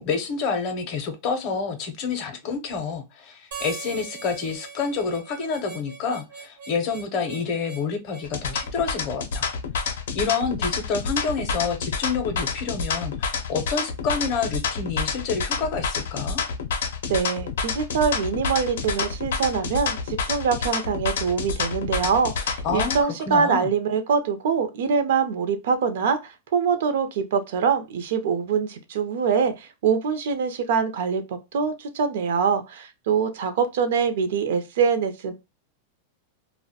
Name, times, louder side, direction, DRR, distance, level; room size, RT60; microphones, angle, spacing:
voice 1, 0.0-9.5 10.1-16.4 22.6-23.7, left 5 dB, 35° left, 0.5 m, -28 dB
Harmonica, 3.5-8.7, right 5 dB, 80° right, 0.8 m, -41 dB
sound 1, 8.2-23.0, left 5 dB, 90° left, 0.5 m, -28 dB
voice 2, 17.1-35.3, right 6 dB, 65° right, 0.4 m, -24 dB
2.2 x 2.0 x 2.6 m
supercardioid pair, 170°, 0 cm